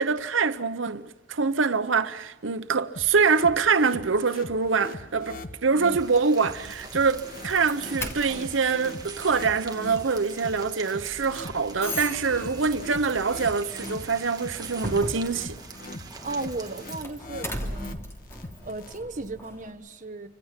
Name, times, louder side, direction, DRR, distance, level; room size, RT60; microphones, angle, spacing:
voice 1, 0.0-15.6, right 5 dB, 85° right, 0.9 m, -25 dB
sound 1, 3.0-18.9, left 2 dB, 50° left, 1.6 m, -42 dB
sound 2, 5.9-17.0, right 5 dB, 20° right, 1.9 m, -44 dB
Doorbell, 6.6-19.7, equal, 15° left, 3.1 m, -40 dB
voice 2, 16.2-18.0 18.6-20.3, right 2 dB, 40° right, 1.3 m, -35 dB
29.0 x 25.5 x 6.0 m
head